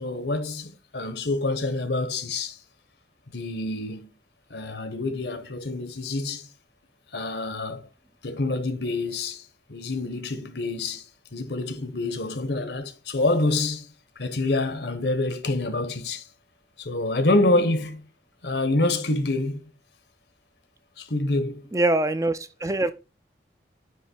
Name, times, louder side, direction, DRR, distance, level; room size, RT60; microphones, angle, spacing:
voice 1, 0.0-2.6 3.3-4.1 4.5-6.5 7.1-7.9 8.2-16.3 16.8-18.0 18.4-19.6 21.0-21.7, left 2 dB, 70° left, 1.1 m, -27 dB
voice 2, 21.7-22.9, right 2 dB, 20° right, 0.4 m, -23 dB
9.4 x 3.2 x 4.5 m
head